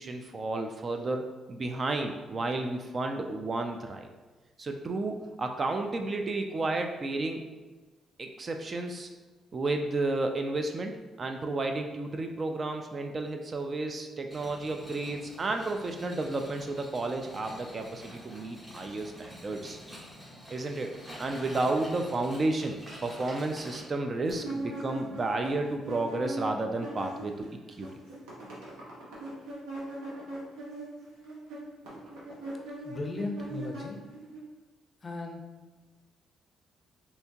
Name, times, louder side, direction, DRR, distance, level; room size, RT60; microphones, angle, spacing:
voice 1, 0.0-4.1 4.6-7.4 8.2-9.1 9.5-10.9 11.2-19.8 20.5-20.9 21.2-22.8 23.0-27.9, right 2 dB, 35° right, 4 dB, 0.3 m, -32 dB
sound 1, 14.3-23.8, equal, 15° right, 1.1 m, -47 dB
sound 2, 24.3-27.4 27.7-34.4, right 1 dB, 90° right, 1.0 m, -40 dB
voice 2, 32.8-34.0 35.0-35.5, left 2 dB, 35° left, 3 dB, 0.5 m, -36 dB
3.3 x 2.8 x 2.8 m, 1.3 s
cardioid pair, 90°, 0 cm